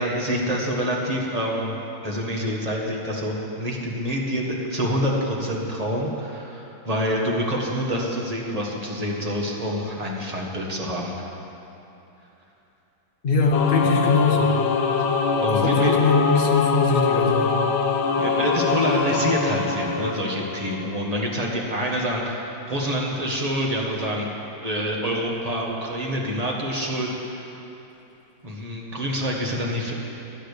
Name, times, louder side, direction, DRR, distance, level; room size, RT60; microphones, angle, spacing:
voice 1, 0.0-1.7 2.0-11.1 15.4-15.9 18.2-24.3 24.6-27.6 28.4-29.9, equal, 20° right, -2 dB, 1.3 m, -26 dB
voice 2, 13.2-14.5 15.5-17.5, left 3 dB, 35° left, -1 dB, 1.1 m, -22 dB
Singing / Musical instrument, 13.5-21.0, left 5 dB, 80° left, 1.6 m, -23 dB
12.5 x 9.0 x 6.7 m, 3.0 s
omnidirectional pair, 2.2 m